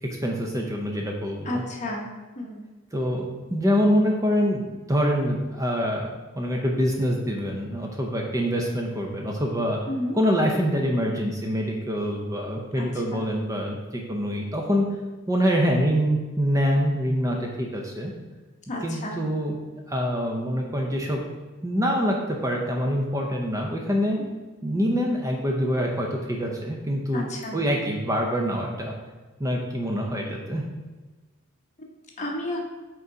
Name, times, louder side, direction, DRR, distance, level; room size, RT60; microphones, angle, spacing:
voice 1, 0.0-1.6 2.9-6.1 6.4-9.8 10.1-14.9 15.3-18.1 18.8-19.6 19.9-21.3 21.6-24.2 24.6-29.0 29.4-30.6, equal, 15° right, 0 dB, 0.6 m, -25 dB
voice 2, 1.4-2.1 2.4-2.6 9.9-10.2 12.8-12.9 13.1-13.2 18.7-19.2 27.1-27.6 31.8-32.6, left 1 dB, 35° left, 0 dB, 0.9 m, -31 dB
5.3 x 3.9 x 4.7 m, 1.2 s
head